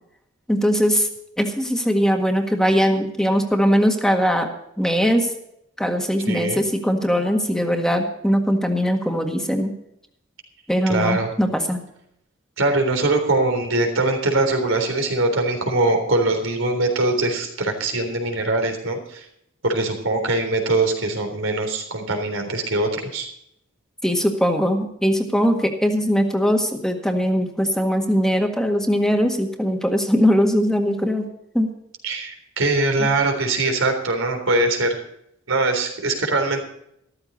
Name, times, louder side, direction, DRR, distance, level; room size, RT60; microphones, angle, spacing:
voice 1, 0.5-1.1 1.4-4.5 4.8-5.3 5.8-9.7 10.7-11.8 24.0-31.3 31.5-31.7 33.0-33.1, equal, 5° left, 4 dB, 1.7 m, -20 dB
voice 2, 6.3-6.6 10.9-11.3 12.6-19.3 19.6-23.3 32.0-35.0 35.5-36.6, right 2 dB, 85° right, 4 dB, 3.7 m, -22 dB
14.0 x 14.0 x 4.1 m, 0.75 s
head